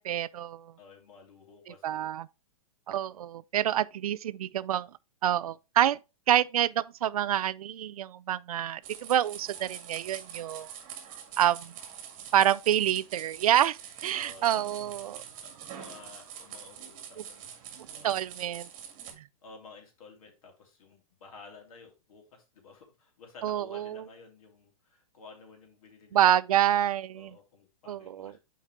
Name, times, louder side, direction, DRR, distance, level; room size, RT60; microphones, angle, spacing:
voice 1, 0.0-0.7 1.8-2.3 2.9-4.9 5.2-6.0 6.3-10.7 11.4-11.7 12.3-15.2 18.0-18.7 19.2-19.3 23.4-24.0 26.1-27.3 27.9-28.3, right 11 dB, 75° right, 0.4 m, -27 dB
voice 2, 0.8-2.1 14.1-14.7 15.4-17.5 17.9-18.2 19.4-26.4 27.1-28.4, left 4 dB, 70° left, 2.9 m, -52 dB
sound 1, 8.8-19.1, right 8 dB, 35° right, 1.8 m, -45 dB
7.2 x 4.7 x 3.2 m
hypercardioid pair, 140°, 19 cm